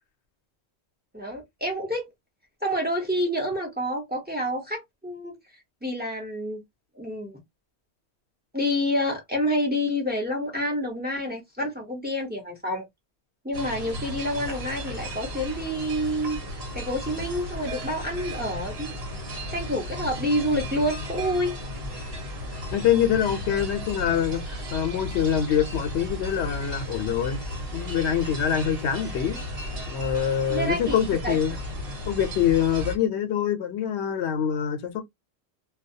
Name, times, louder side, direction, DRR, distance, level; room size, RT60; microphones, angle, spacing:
voice 1, 1.1-2.1 2.6-5.4 5.8-6.6 7.0-7.4 8.5-12.9 13.4-16.4 16.7-18.9 19.5-21.5 30.5-31.4, equal, 10° right, 0.9 m, -28 dB
sound 1, 13.5-33.0, left 1 dB, 60° right, 1.1 m, -35 dB
voice 2, 22.7-27.4 27.7-29.4 29.9-31.5 32.1-35.0, left 9 dB, 85° left, 0.9 m, -25 dB
2.3 x 2.2 x 2.6 m
omnidirectional pair, 1.1 m